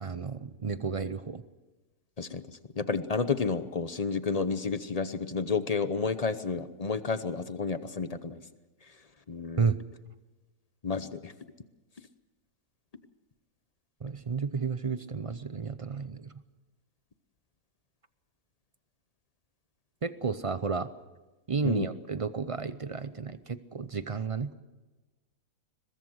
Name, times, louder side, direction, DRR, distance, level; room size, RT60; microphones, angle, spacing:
voice 1, 0.0-1.4 9.6-9.8 14.0-16.3 20.0-20.9 21.5-24.5, right 5 dB, 50° right, 13 dB, 0.4 m, -32 dB
voice 2, 2.8-8.4 9.3-9.7 10.8-11.3 21.6-21.9, left 4 dB, 35° left, 12 dB, 0.7 m, -31 dB
22.0 x 22.0 x 6.4 m, 1.2 s
omnidirectional pair, 1.7 m